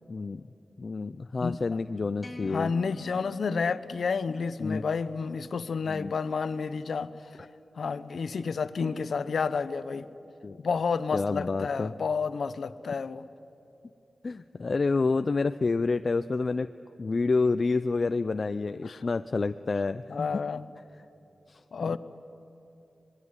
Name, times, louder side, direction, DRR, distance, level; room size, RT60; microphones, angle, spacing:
voice 1, 0.1-0.4 0.8-2.7 4.6-4.8 5.9-6.1 10.4-10.6 11.1-11.9 14.2-16.7 17.0-20.3 21.5-21.6 21.9-22.0, left 3 dB, 50° left, 10 dB, 0.5 m, -28 dB
sound 1, 2.2-4.6, left 1 dB, 10° left, 2.6 m, -46 dB
voice 2, 2.4-7.3 7.8-10.1 10.6-13.3 18.8-19.0 20.1-20.7 21.7-22.0, left 5 dB, 75° left, 13 dB, 0.9 m, -30 dB
25.5 x 20.5 x 9.7 m, 2.8 s
wide cardioid pair, 90°, 0 cm